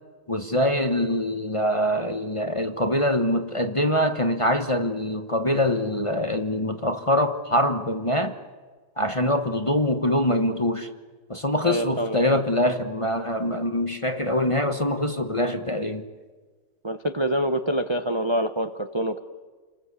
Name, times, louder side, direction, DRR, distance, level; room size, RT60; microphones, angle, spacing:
voice 1, 0.3-8.3 9.0-10.9 11.3-16.0, left 1 dB, 20° left, 1.0 m, -24 dB
voice 2, 11.6-12.4 16.8-19.2, right 1 dB, 25° right, 0.6 m, -26 dB
30.0 x 20.0 x 8.3 m
omnidirectional pair, 1.9 m